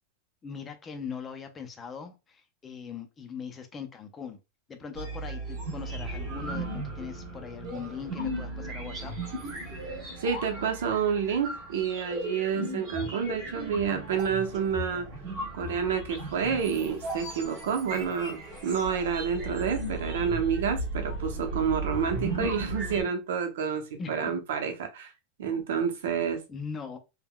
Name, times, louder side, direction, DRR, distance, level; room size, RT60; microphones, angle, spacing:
voice 1, 0.4-4.4 4.7-9.1 24.0-24.3 26.5-27.0, left 6 dB, 20° left, 0.4 m, -40 dB
sound 1, 4.9-23.0, right 1 dB, 40° right, 1.3 m, -36 dB
voice 2, 10.2-15.1 15.5-25.1 25.4-26.4, right 7 dB, 90° right, 0.7 m, -29 dB
3.5 x 2.1 x 2.2 m
supercardioid pair, 160°, 0 cm